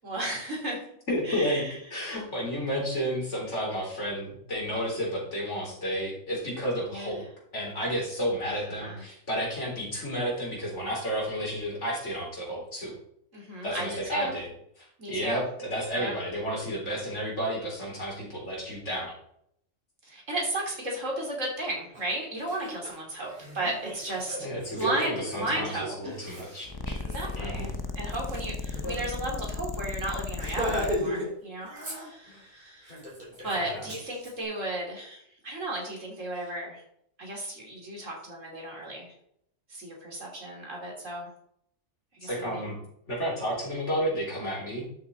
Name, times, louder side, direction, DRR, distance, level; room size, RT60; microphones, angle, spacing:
voice 1, 0.0-0.8 1.3-1.8 6.9-7.2 8.5-9.0 13.3-14.3 15.0-15.4 15.9-16.1 20.0-24.4 24.8-26.1 27.0-27.7 28.0-32.9 33.4-36.8 37.2-39.1 39.7-41.3 42.2-42.7, right 1 dB, 70° right, -1 dB, 3.4 m, -34 dB
voice 2, 1.1-1.6 1.9-7.2 7.5-12.9 13.6-14.5 15.1-19.1 24.4-27.0 27.3-27.7 33.6-33.9 42.2-42.8 43.1-44.8, equal, 60° left, -3 dB, 4.3 m, -31 dB
Laughter, 21.9-22.0 22.4-29.0 29.3-29.5 29.7-29.9 30.3-31.3 31.6-32.4 32.8-34.3, left 1 dB, 40° right, 4.3 m, -37 dB
sound 1, 26.7-31.0, left 4 dB, 25° left, 0.5 m, -35 dB
12.0 x 6.9 x 4.2 m, 0.70 s
omnidirectional pair, 1.4 m